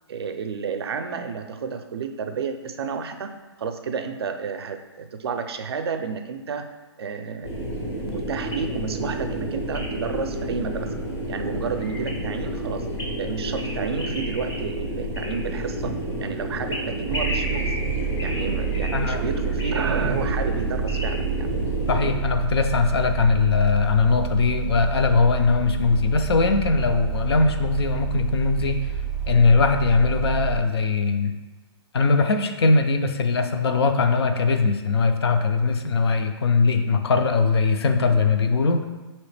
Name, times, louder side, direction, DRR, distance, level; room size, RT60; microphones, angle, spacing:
voice 1, 0.1-3.3 3.6-6.7 7.0-7.5 8.0-10.9 11.3-12.9 13.2-15.9 16.2-17.8 18.2-21.5, right 5 dB, 60° right, 7 dB, 0.4 m, -31 dB
sound 1, 7.4-22.1, equal, 85° left, 1.4 m, -30 dB
sound 2, 17.1-30.6, right 8 dB, ahead, 0.4 m, -29 dB
voice 2, 18.9-19.2 21.9-28.8 29.3-31.3 31.9-38.9, left 4 dB, 65° left, 6 dB, 0.5 m, -20 dB
4.9 x 2.9 x 3.3 m, 1.2 s
hypercardioid pair, 165°, 14 cm